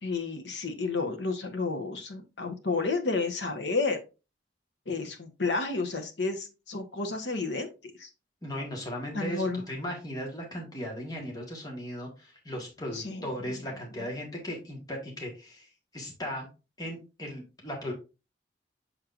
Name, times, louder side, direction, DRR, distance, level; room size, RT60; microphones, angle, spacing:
voice 1, 0.0-4.0 4.9-7.7 8.0-8.1 9.1-9.6 12.9-13.3 14.0-14.1, left 3 dB, 80° left, 6 dB, 1.1 m, -31 dB
voice 2, 8.4-15.7 15.9-16.5 16.8-17.9, equal, 20° left, -1 dB, 1.5 m, -37 dB
6.4 x 6.1 x 2.5 m, 0.29 s
head